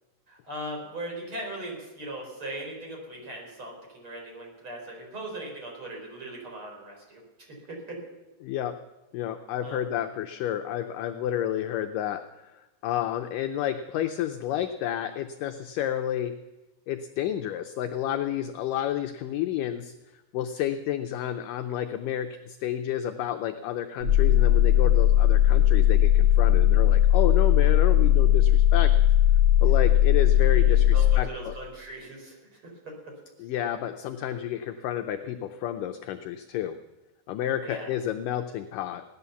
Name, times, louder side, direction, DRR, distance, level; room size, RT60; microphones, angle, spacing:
voice 1, 0.3-7.2 7.5-8.0 9.6-9.8 30.3-33.2 37.6-37.9, right 1 dB, 35° right, -1 dB, 5.1 m, -39 dB
voice 2, 8.4-8.8 9.1-16.3 16.9-19.9 20.3-28.9 29.6-31.5 33.4-36.8 37.3-39.0, left 11 dB, 80° left, 7 dB, 1.9 m, -30 dB
sound 1, 24.0-31.2, left 12 dB, 65° right, 7.8 m, -19 dB
17.5 x 11.0 x 7.0 m, 1.0 s
omnidirectional pair, 4.5 m